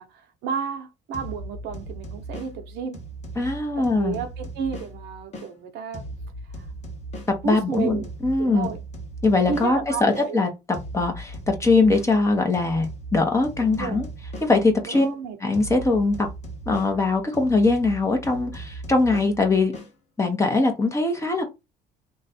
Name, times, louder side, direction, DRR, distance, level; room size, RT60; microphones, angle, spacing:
voice 1, 0.0-3.0 3.8-6.1 6.5-6.7 7.4-8.1 8.4-8.8 9.5-10.4 13.7-14.0 14.8-15.4, right 6 dB, 85° right, 1.0 m, -32 dB
sound 1, 1.1-5.5 5.9-10.3 10.7-15.1 15.5-19.9, right 1 dB, 40° left, 1.5 m, -38 dB
voice 2, 3.4-4.2 7.4-8.7 9.2-10.5 10.9-14.1 14.4-15.1 15.4-16.3 16.7-19.7 20.2-21.4, left 3 dB, 15° left, 1.3 m, -21 dB
3.1 x 2.6 x 4.3 m
cardioid pair, 110°, 17 cm